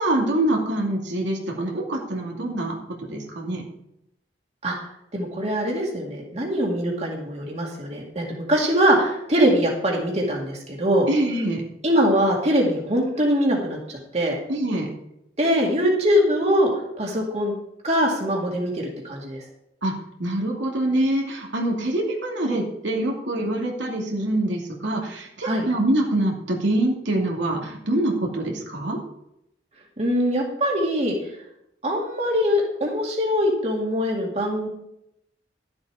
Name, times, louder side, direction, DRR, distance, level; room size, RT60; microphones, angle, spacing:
voice 1, 0.0-3.6 11.1-11.6 14.5-14.9 19.8-19.9 20.2-29.0, right 1 dB, 80° right, 0 dB, 2.4 m, -25 dB
voice 2, 5.1-11.1 11.8-13.8 14.1-14.4 15.4-16.7 17.0-17.5 17.8-19.4 25.4-25.6 30.0-31.1 31.8-34.7, equal, 35° right, -1 dB, 2.2 m, -22 dB
12.0 x 7.9 x 4.8 m, 0.80 s
head